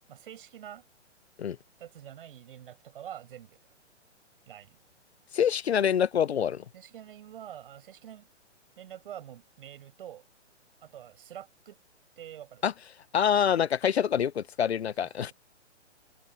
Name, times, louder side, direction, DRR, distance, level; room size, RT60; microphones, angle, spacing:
voice 1, 0.1-0.9 1.8-3.7 4.5-4.8 6.7-8.3 8.8-10.2 10.8-11.8 12.2-12.6 15.0-15.3, right 10 dB, 50° right, 6.6 m, -46 dB
voice 2, 5.3-6.6 12.6-12.7 13.1-15.3, left 8 dB, 60° left, 0.7 m, -26 dB
figure-of-eight pair, 125°, 36 cm